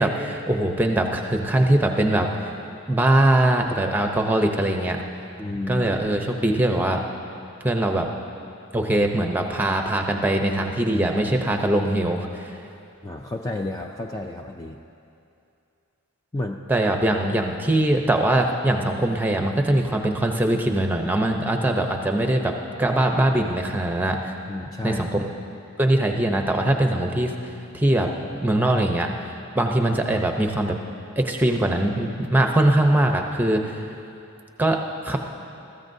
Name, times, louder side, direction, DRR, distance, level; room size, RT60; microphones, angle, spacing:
voice 1, 0.0-2.5 2.9-5.0 5.7-7.0 7.6-8.1 8.7-12.6 16.7-24.3 24.8-25.3 25.8-27.3 27.7-28.1 28.3-29.1 29.5-30.8 31.2-33.8 34.6-34.8 35.0-35.2, right 1 dB, 10° right, 3 dB, 0.7 m, -22 dB
voice 2, 5.4-5.9 13.0-14.8 16.3-16.6 24.5-25.1, left 2 dB, 15° left, 2 dB, 0.3 m, -31 dB
21.0 x 14.5 x 2.7 m, 2.7 s
head